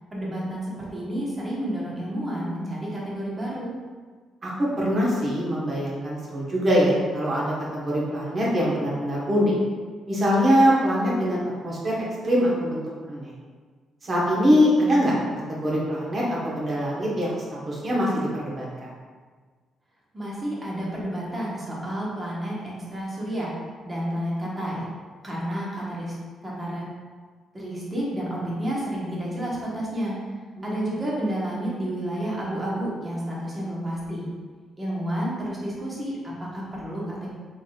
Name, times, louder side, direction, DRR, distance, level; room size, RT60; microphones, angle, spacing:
voice 1, 0.1-3.7 20.1-23.5 23.8-24.9 25.2-26.1 26.4-26.8 27.5-30.2 30.6-34.3 34.8-37.3, right 1 dB, 25° right, -5 dB, 1.2 m, -30 dB
voice 2, 4.4-9.5 10.1-12.0 12.2-12.8 13.1-13.3 14.0-15.1 15.5-18.9 30.6-30.8, equal, 40° right, -5 dB, 1.3 m, -23 dB
4.0 x 3.5 x 2.4 m, 1.5 s
cardioid pair, 90°, 0 cm